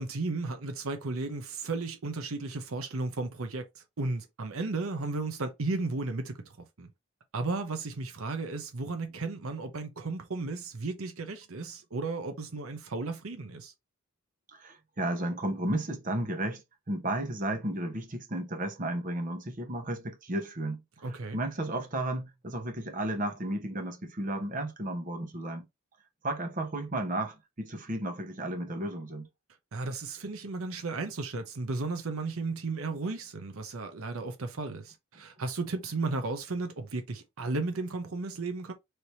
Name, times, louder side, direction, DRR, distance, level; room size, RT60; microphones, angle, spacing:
voice 1, 0.0-6.9 7.3-13.7 21.0-21.4 29.7-38.7, right 3 dB, 80° right, 0.8 m, -34 dB
voice 2, 14.5-16.6 16.9-25.7 26.2-29.3, right 1 dB, 40° right, 1.0 m, -33 dB
3.3 x 3.0 x 4.1 m
head